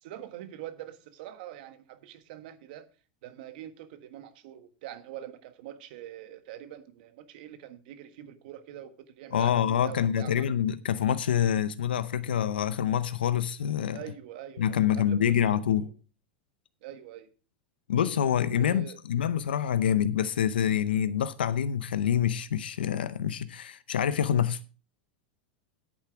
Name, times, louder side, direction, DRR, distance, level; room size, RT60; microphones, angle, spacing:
voice 1, 0.0-2.9 3.2-10.5 13.9-15.4 15.8-15.9 16.8-17.3 18.6-19.0, right 12 dB, 65° right, 1.5 m, -44 dB
voice 2, 9.3-14.0 14.6-15.9 17.9-24.6, left 9 dB, 85° left, 0.6 m, -26 dB
10.0 x 8.7 x 4.6 m
hypercardioid pair, 100°, 5 cm